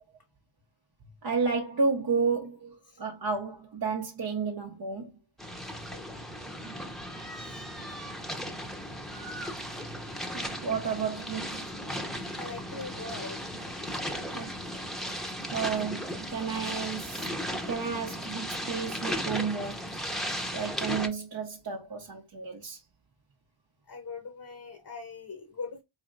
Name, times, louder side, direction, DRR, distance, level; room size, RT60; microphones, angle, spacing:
voice 1, 1.2-5.1 10.3-11.6 14.3-14.5 15.5-17.3 17.7-19.9 20.5-22.8, right 5 dB, 50° right, 0.7 m, -32 dB
sound 1, 5.4-21.1, equal, ahead, 0.8 m, -36 dB
voice 2, 5.7-6.1 7.3-7.7 12.4-13.6 23.8-25.8, left 4 dB, 45° left, 1.0 m, -42 dB
4.2 x 3.2 x 2.5 m
wide cardioid pair, 85°, 48 cm